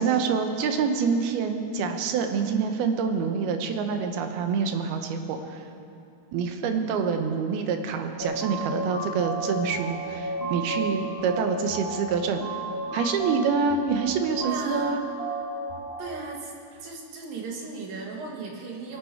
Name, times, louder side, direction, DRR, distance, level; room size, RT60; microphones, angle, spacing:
voice 1, 0.0-5.6 6.3-12.4 12.9-15.0, right 5 dB, 85° right, 6 dB, 2.9 m, -26 dB
sound 1, 8.2-16.2, right 2 dB, 25° right, 1.2 m, -33 dB
voice 2, 14.4-14.9 16.0-16.5 16.8-19.0, right 4 dB, 65° right, -1 dB, 3.4 m, -37 dB
21.5 x 12.0 x 4.6 m, 2.5 s
omnidirectional pair, 4.4 m